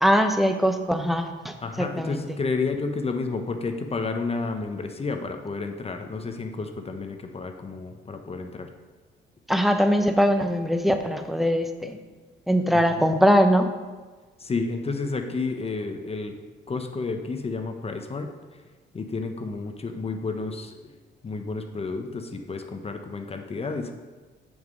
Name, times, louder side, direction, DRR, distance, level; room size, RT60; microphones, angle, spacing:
voice 1, 0.0-2.4 9.5-12.0 12.5-13.7, equal, ahead, 7 dB, 0.8 m, -22 dB
voice 2, 1.6-8.7 13.0-13.1 14.4-16.4 16.7-18.6 18.9-20.8 21.2-23.9, left 4 dB, 30° left, 5 dB, 0.8 m, -31 dB
7.2 x 6.6 x 5.2 m, 1.3 s
cardioid pair, 90°, 20 cm